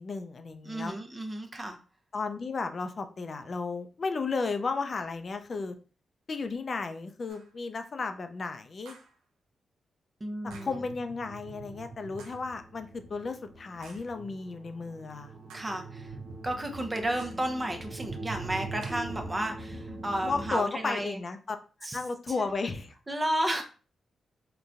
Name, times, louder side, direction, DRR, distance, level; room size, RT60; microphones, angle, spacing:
voice 1, 0.0-0.9 2.1-5.8 6.3-9.0 10.4-15.3 20.2-21.6 21.9-22.9, left 4 dB, 55° left, 7 dB, 0.4 m, -34 dB
voice 2, 0.6-1.8 10.2-10.7 15.5-16.1 16.4-21.2 21.8-22.0 22.4-22.5 23.1-23.6, right 1 dB, 30° right, 5 dB, 0.7 m, -32 dB
sound 1, 7.3-7.6 8.9-9.2 10.5-10.9 12.2-12.6 13.8-14.2 15.5-15.9 17.2-17.5 18.8-19.2, right 5 dB, 85° right, 0.4 m, -53 dB
sound 2, 10.5-20.6, right 3 dB, 70° right, 0.8 m, -42 dB
3.8 x 2.2 x 2.4 m, 0.36 s
supercardioid pair, 40°, 0 cm